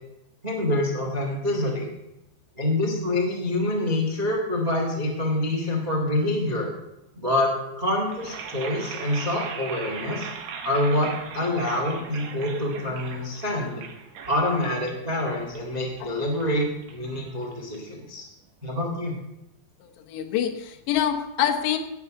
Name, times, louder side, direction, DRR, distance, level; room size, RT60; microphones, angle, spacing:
voice 1, 0.4-1.9 2.6-6.7 7.1-10.3 10.6-13.8 14.3-18.3 18.6-19.2, left 1 dB, 35° right, -1 dB, 0.6 m, -26 dB
sound 1, 8.1-18.1, right 6 dB, 80° right, 1.6 m, -39 dB
voice 2, 19.8-21.8, left 10 dB, 75° left, 5 dB, 3.2 m, -26 dB
17.0 x 5.9 x 6.6 m, 0.92 s
omnidirectional pair, 5.2 m